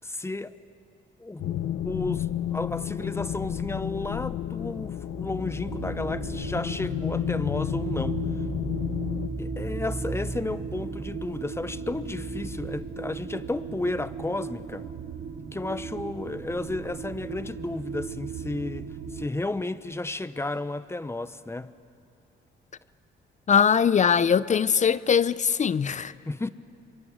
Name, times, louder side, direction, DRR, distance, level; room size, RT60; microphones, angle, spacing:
voice 1, 0.0-0.6 1.2-1.6 1.8-8.2 9.4-14.9 15.5-21.7 26.3-26.5, left 2 dB, 15° left, 0.9 m, -33 dB
sound 1, 1.4-9.3, left 11 dB, 80° left, 0.9 m, -31 dB
sound 2, 3.2-13.1, right 1 dB, 10° right, 5.1 m, -39 dB
sound 3, 5.7-19.3, right 6 dB, 65° right, 2.0 m, -37 dB
voice 2, 23.5-26.1, left 7 dB, 35° left, 0.6 m, -21 dB
25.5 x 23.0 x 9.5 m
cardioid pair, 90°, 20 cm